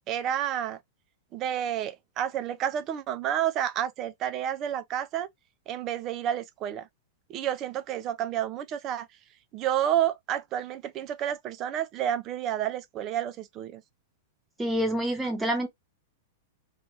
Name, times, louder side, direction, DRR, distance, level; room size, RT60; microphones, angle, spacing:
voice 1, 0.1-0.8 1.3-5.3 5.7-6.9 7.3-9.1 9.5-13.8, right 10 dB, 40° right, 0.5 m, -30 dB
voice 2, 14.6-15.7, equal, 10° right, 1.0 m, -27 dB
2.6 x 2.4 x 3.1 m
hypercardioid pair, 110°, 0 cm